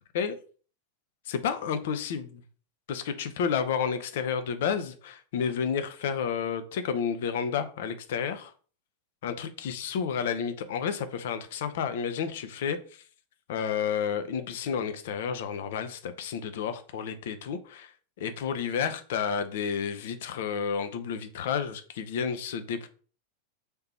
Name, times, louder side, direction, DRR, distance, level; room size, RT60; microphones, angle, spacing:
voice 1, 1.3-2.4 2.9-8.5 9.2-13.0 13.5-17.9 18.2-22.9, left 7 dB, 55° left, 10 dB, 0.5 m, -31 dB
3.4 x 2.8 x 4.2 m, 0.41 s
figure-of-eight pair, 90°, 0 cm